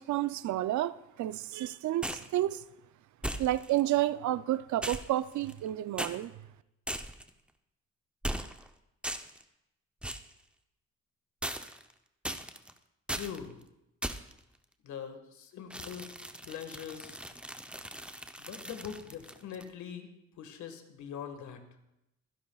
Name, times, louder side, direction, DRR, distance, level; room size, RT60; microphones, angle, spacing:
voice 1, 0.0-2.6 3.4-6.3, right 14 dB, 70° right, 0.5 m, -30 dB
sound 1, 2.0-2.3 3.2-3.8 4.8-5.7 6.0-6.2 6.9-7.3 8.2-8.7 9.0-9.4 10.0-10.3 11.4-11.9 12.2-12.7 13.1-13.4 14.0-14.4 15.7-19.7, right 1 dB, 5° right, 0.7 m, -38 dB
voice 2, 13.1-13.6 14.8-16.1 16.4-17.2 18.4-20.1 20.4-21.6, left 8 dB, 75° left, 1.7 m, -42 dB
24.0 x 10.5 x 2.4 m
cardioid pair, 90°, 30 cm